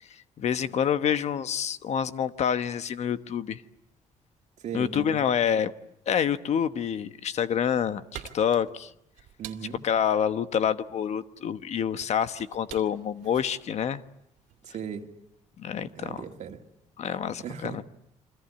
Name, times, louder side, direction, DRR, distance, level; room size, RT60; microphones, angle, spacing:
voice 1, 0.1-3.6 4.7-5.7 6.1-8.9 9.8-14.0 15.6-16.2 17.0-17.8, left 8 dB, 55° left, 1.2 m, -27 dB
voice 2, 4.6-5.3 9.4-9.8 14.6-15.0 15.8-16.6 17.4-17.8, right 7 dB, 60° right, 2.3 m, -37 dB
sound 1, 8.0-14.7, right 12 dB, 85° right, 2.6 m, -48 dB
28.0 x 24.5 x 8.6 m
cardioid pair, 95°, 13 cm